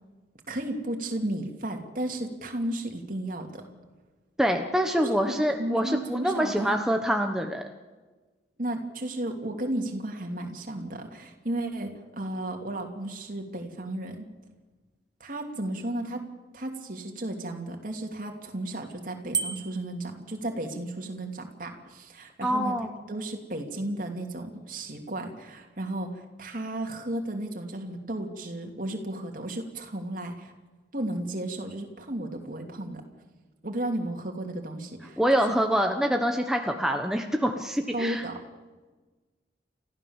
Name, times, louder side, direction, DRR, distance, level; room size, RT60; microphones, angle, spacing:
voice 1, 0.5-3.6 4.9-6.8 8.6-14.3 15.2-16.2 16.5-30.5 30.9-33.0 33.6-35.2 35.5-35.6 37.9-38.4, right 1 dB, 50° right, 2 dB, 2.8 m, -34 dB
voice 2, 4.4-7.6 22.4-22.9 35.2-38.2, equal, 5° right, 4 dB, 1.1 m, -25 dB
Bicycle bell, 19.3-20.0, right 6 dB, 25° right, 1.7 m, -31 dB
30.0 x 14.5 x 7.3 m, 1.3 s
head